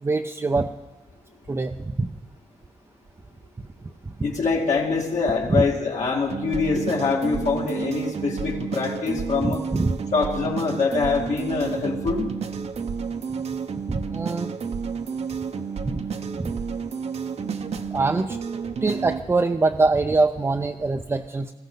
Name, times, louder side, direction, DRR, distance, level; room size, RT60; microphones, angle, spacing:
voice 1, 0.0-0.7 1.5-2.1 4.0-4.1 5.5-5.6 9.4-9.9 13.9-14.5 16.4-16.5 17.9-18.4 18.8-21.5, right 3 dB, 20° right, 5 dB, 0.5 m, -23 dB
voice 2, 4.2-9.6 10.1-12.3, left 4 dB, 70° left, -2 dB, 2.3 m, -24 dB
sound 1, 6.3-19.2, right 6 dB, 55° right, 0.8 m, -31 dB
19.5 x 14.5 x 4.0 m, 1.1 s
cardioid pair, 105°, 13 cm